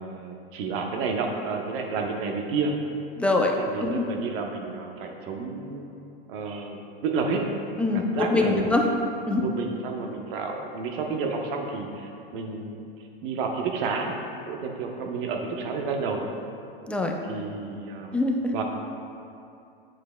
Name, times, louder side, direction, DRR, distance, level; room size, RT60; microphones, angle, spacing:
voice 1, 0.0-2.7 3.6-5.8 6.3-7.4 7.9-8.7 9.4-12.8 13.2-14.2 14.5-16.2 17.3-18.2 18.5-18.6, right 4 dB, 60° right, 2 dB, 0.9 m, -30 dB
voice 2, 3.2-3.5 3.8-4.1 7.8-8.9 9.2-9.5 16.9-17.2 18.1-18.5, left 2 dB, 5° left, 1 dB, 0.4 m, -24 dB
7.4 x 7.1 x 2.2 m, 2.6 s
hypercardioid pair, 115°, 29 cm